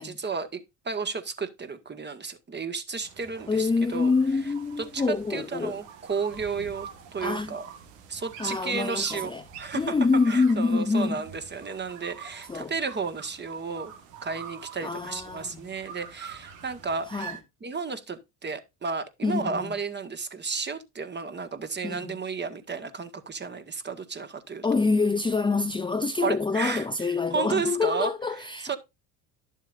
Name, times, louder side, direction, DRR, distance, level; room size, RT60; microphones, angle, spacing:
voice 1, 0.0-4.1 4.4-7.7 8.1-9.9 10.3-13.9 14.2-17.1 17.6-24.6 26.2-26.9 27.3-28.8, right 5 dB, 25° right, 1.7 m, -33 dB
sound 1, 3.0-17.4, right 8 dB, 90° right, 1.6 m, -45 dB
voice 2, 3.5-5.8 7.2-7.6 8.4-9.4 9.7-11.2 12.5-12.7 14.8-15.7 17.1-17.4 19.2-19.7 21.8-22.2 24.6-28.8, left 4 dB, 15° left, 0.6 m, -26 dB
11.5 x 7.2 x 2.6 m
supercardioid pair, 80°, 38 cm